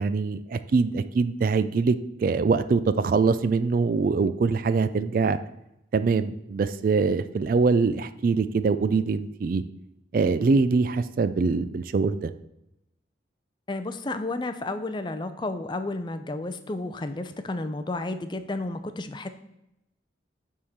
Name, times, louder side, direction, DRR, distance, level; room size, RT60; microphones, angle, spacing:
voice 1, 0.0-2.0 2.2-5.4 5.9-9.6 10.1-12.3, right 4 dB, 50° right, 13 dB, 0.3 m, -23 dB
voice 2, 13.7-19.3, left 2 dB, 25° left, 9 dB, 0.4 m, -32 dB
7.0 x 3.7 x 6.3 m, 0.87 s
head